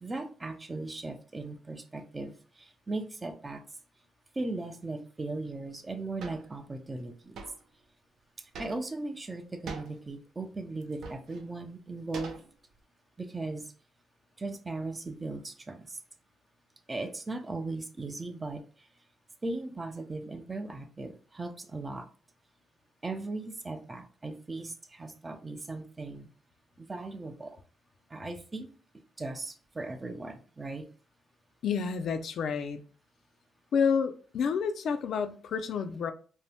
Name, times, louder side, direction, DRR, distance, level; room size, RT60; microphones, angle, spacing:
voice 1, 0.0-3.6 4.3-7.4 8.4-12.4 13.2-13.7 14.4-16.0 16.9-18.9 19.4-22.1 23.0-26.3 26.8-27.6 28.1-28.7 29.2-30.9, right 2 dB, 25° right, 0.4 m, -38 dB
Bucket Full of water on hard surface hit Close, 6.2-6.5 7.4-7.6 8.5-9.0 9.7-10.0 10.8-11.4 12.1-12.8, right 4 dB, 70° right, 0.6 m, -42 dB
voice 2, 31.6-32.8 33.7-36.1, left 6 dB, 65° left, 0.3 m, -29 dB
2.6 x 2.1 x 3.3 m
cardioid pair, 90°, 0 cm